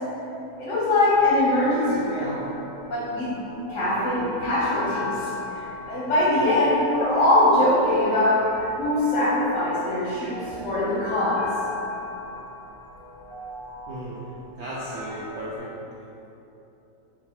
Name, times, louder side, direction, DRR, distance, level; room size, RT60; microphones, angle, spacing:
voice 1, 0.6-2.4 2.9-3.4 3.7-11.6, left 1 dB, 55° left, -7 dB, 0.9 m, -22 dB
sound 1, 1.1-15.6, left 2 dB, 30° right, 0.4 m, -38 dB
voice 2, 13.9-15.7, equal, 80° right, -7 dB, 0.6 m, -35 dB
3.8 x 2.5 x 4.2 m, 3.0 s
omnidirectional pair, 1.8 m